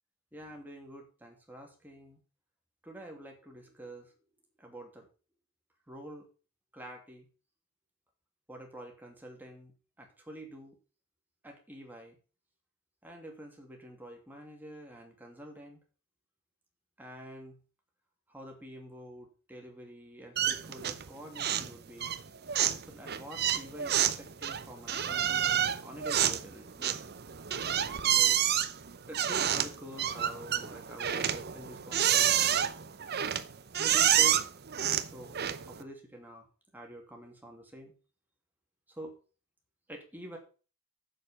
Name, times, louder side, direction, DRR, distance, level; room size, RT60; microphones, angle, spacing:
voice 1, 0.3-2.2 2.8-4.1 4.6-5.1 5.9-6.3 6.7-7.3 8.5-9.7 10.0-10.8 11.4-12.2 13.0-15.8 17.0-17.6 18.3-22.1 22.8-27.1 28.1-28.4 29.1-32.7 33.8-34.4 35.1-35.4 35.7-36.5 36.7-37.9 38.9-39.2 39.9-40.4, right 1 dB, 10° right, 1 dB, 2.6 m, -47 dB
sound 1, 20.4-21.1 21.4-21.7 22.0-35.8, right 10 dB, 50° right, 0.7 m, -29 dB
7.5 x 6.7 x 7.2 m, 0.36 s
head